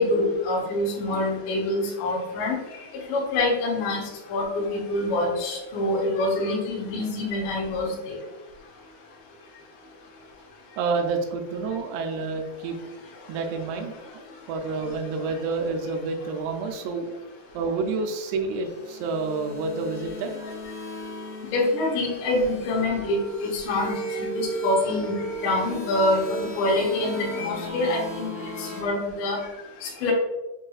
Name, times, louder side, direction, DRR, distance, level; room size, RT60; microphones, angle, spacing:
voice 1, 0.0-2.6 3.1-4.0 4.3-8.2 21.4-26.2 26.6-28.3 28.6-29.4 29.8-30.1, left 2 dB, 90° left, -3 dB, 1.8 m, -25 dB
voice 2, 10.8-12.8 13.3-14.2 14.5-17.2 17.5-20.4 28.4-28.6, right 4 dB, 80° right, 4 dB, 2.5 m, -29 dB
sound 1, 18.5-28.8, right 2 dB, 70° left, 2.1 m, -36 dB
6.5 x 3.0 x 2.3 m, 1.1 s
omnidirectional pair, 5.2 m